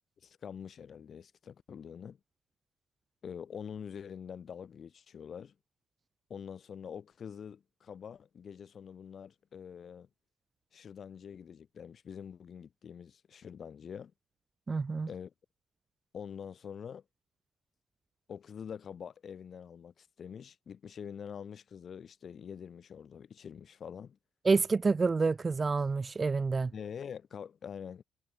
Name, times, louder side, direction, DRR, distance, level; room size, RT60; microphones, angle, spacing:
voice 1, 0.2-2.2 3.2-5.5 6.3-10.1 10.7-14.1 15.1-15.3 16.1-17.0 18.3-24.2 26.7-28.0, left 7 dB, 55° left, 4.4 m, -45 dB
voice 2, 14.7-15.1 24.4-26.7, right 4 dB, 30° right, 0.3 m, -28 dB
cardioid pair, 90°, 0 cm